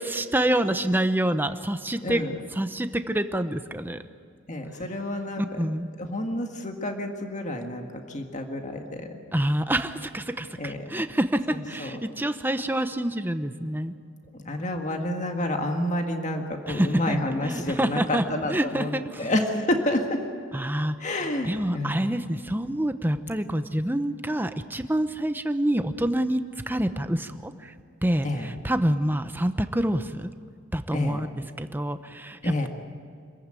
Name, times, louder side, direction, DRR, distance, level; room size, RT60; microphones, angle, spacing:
voice 1, 0.0-2.2 2.5-4.0 5.4-5.9 9.3-13.9 16.7-19.3 20.5-20.9 21.4-27.7 28.0-30.3 30.7-31.3 31.6-32.7, right 1 dB, 10° right, 9 dB, 0.9 m, -27 dB
voice 2, 4.5-5.4 6.0-9.2 10.6-10.8 11.8-12.0 14.4-18.9 19.2-20.2 21.0-22.2 28.2-28.5 30.9-31.2 32.4-32.7, left 1 dB, 35° left, 4 dB, 1.9 m, -29 dB
26.5 x 14.5 x 9.1 m, 2.2 s
head